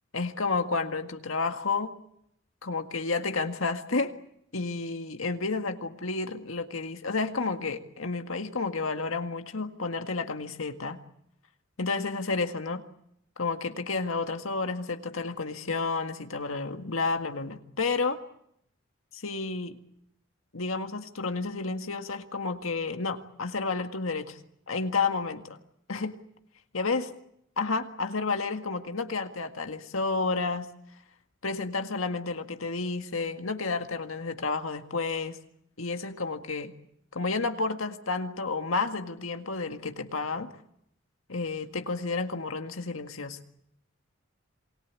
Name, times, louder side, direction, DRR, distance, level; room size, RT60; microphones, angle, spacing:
voice 1, 0.1-2.0 2.6-4.1 4.5-11.0 11.8-12.8 13.4-18.2 19.1-19.8 20.5-24.4 24.7-25.6 25.9-26.2 26.7-27.1 27.6-30.7 31.4-35.4 35.8-36.7 37.1-40.5 41.3-43.4, left 4 dB, 90° left, 6 dB, 1.9 m, -31 dB
27.5 x 20.5 x 8.4 m, 0.75 s
head